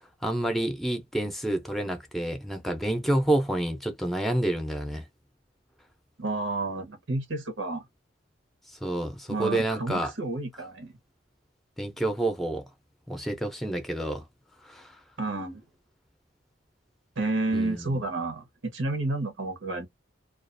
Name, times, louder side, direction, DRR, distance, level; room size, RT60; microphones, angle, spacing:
voice 1, 0.2-5.1 8.8-10.1 11.8-12.7 13.1-14.2 14.6-15.0 17.5-18.0, right 1 dB, ahead, 0.6 m, -28 dB
voice 2, 6.2-7.9 9.3-10.9 15.2-15.6 17.2-19.9, right 2 dB, 85° right, 1.0 m, -30 dB
2.4 x 2.3 x 2.5 m
head